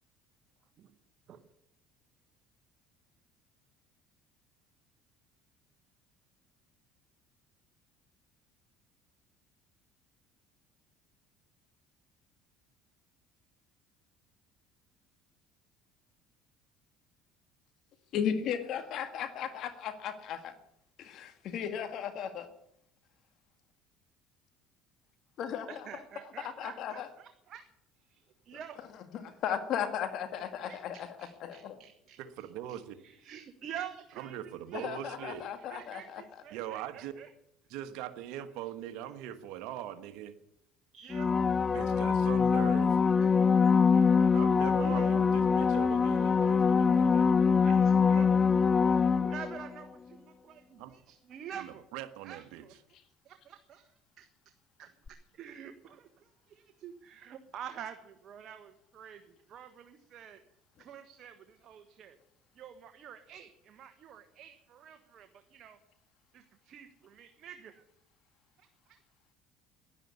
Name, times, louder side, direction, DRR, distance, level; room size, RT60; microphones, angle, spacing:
voice 1, 18.1-20.5 21.0-22.5 25.4-25.9 26.4-27.1 29.1-31.8 34.7-36.2, left 8 dB, 60° left, 9 dB, 1.8 m, -36 dB
voice 2, 25.7-27.6 28.1-28.8 30.7-37.3 40.9-41.5 44.0-44.3 44.8-45.6 47.6-48.3 49.2-51.9 52.2-52.7 53.2-53.9 54.2-54.3 54.8-56.1 56.5-60.4 60.8-62.2 62.5-65.8 66.3-67.8 68.6-69.0, right 9 dB, 50° right, 6 dB, 1.3 m, -48 dB
voice 3, 32.2-33.0 34.2-35.4 36.5-37.1 37.7-40.3 41.7-43.0 44.3-47.3 50.8-50.9 51.6-52.7, right 11 dB, 75° right, 9 dB, 1.4 m, -41 dB
sound 1, 41.1-49.7 55.1-55.2, left 5 dB, 30° left, 0.5 m, -24 dB
11.0 x 11.0 x 9.4 m, 0.77 s
supercardioid pair, 85°, 0 cm